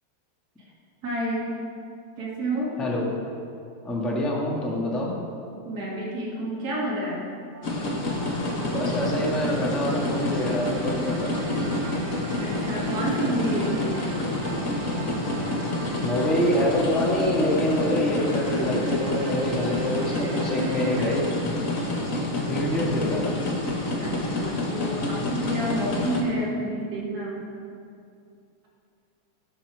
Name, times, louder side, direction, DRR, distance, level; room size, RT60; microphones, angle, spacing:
voice 1, 1.0-1.6 2.2-2.8 5.6-7.3 12.4-14.1 24.0-27.4, right 1 dB, 35° right, -6 dB, 3.0 m, -29 dB
voice 2, 2.8-3.2 3.8-5.1 8.7-11.7 16.0-21.3 22.5-23.4, left 1 dB, ahead, -4 dB, 1.1 m, -26 dB
sound 1, 7.5-21.2, right 5 dB, 70° right, 1.8 m, -37 dB
sound 2, 7.6-26.2, left 2 dB, 45° left, 1.0 m, -28 dB
17.0 x 6.0 x 6.4 m, 2.5 s
omnidirectional pair, 3.5 m